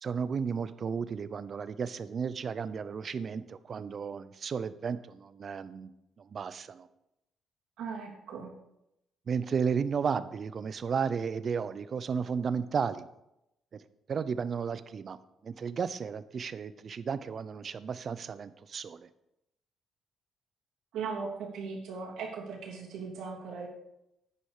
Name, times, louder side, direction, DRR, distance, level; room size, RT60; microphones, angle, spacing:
voice 1, 0.0-6.9 9.3-13.1 13.7-15.2 15.4-19.1, right 6 dB, 50° right, 15 dB, 0.6 m, -33 dB
voice 2, 7.8-8.5 20.9-23.7, right 5 dB, 80° right, -2 dB, 3.1 m, -38 dB
9.9 x 9.8 x 5.0 m, 0.85 s
cardioid pair, 90°, 0 cm